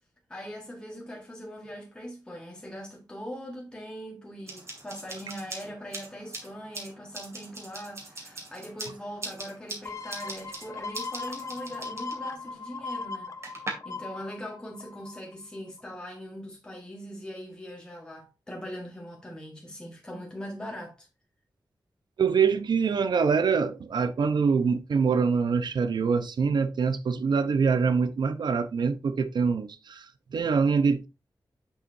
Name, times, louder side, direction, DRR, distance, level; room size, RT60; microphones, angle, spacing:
voice 1, 0.3-21.1, equal, 10° left, 1.5 m, -41 dB
sound 1, 4.5-13.7, right 2 dB, 40° right, 2.3 m, -42 dB
sound 2, 9.9-15.3 15.8-15.9, left 4 dB, 45° left, 0.6 m, -38 dB
voice 2, 22.2-30.1 30.3-31.1, right 5 dB, 85° right, 0.8 m, -24 dB
7.8 x 6.8 x 2.7 m
wide cardioid pair, 155°, 7 cm